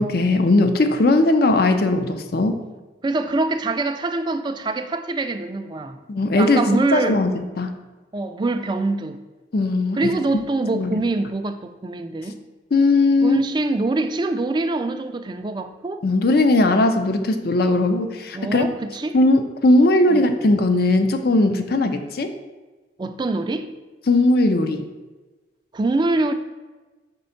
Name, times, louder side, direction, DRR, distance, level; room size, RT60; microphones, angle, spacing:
voice 1, 0.0-2.6 6.1-6.6 6.9-7.3 7.6-7.7 9.5-10.4 10.7-10.9 12.7-13.4 16.0-18.7 19.1-22.3 24.1-24.8, left 2 dB, 55° left, 7 dB, 0.5 m, -18 dB
voice 2, 3.0-6.0 6.4-7.2 8.1-9.2 10.0-12.4 13.2-16.0 18.3-19.2 20.1-20.2 23.0-23.7 25.7-26.3, right 2 dB, 25° right, 8 dB, 0.3 m, -24 dB
5.2 x 3.4 x 5.7 m, 1.2 s
head